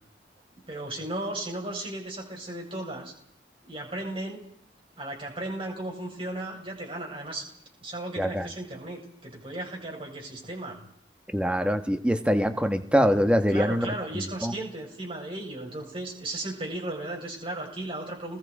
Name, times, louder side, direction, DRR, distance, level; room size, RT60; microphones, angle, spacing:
voice 1, 0.7-3.1 3.6-4.4 5.0-7.4 7.8-10.8 13.5-18.4, right 1 dB, 30° right, -1 dB, 7.6 m, -35 dB
voice 2, 8.2-8.5 11.3-14.5, equal, 5° right, 8 dB, 1.5 m, -24 dB
29.5 x 21.0 x 5.0 m, 0.64 s
head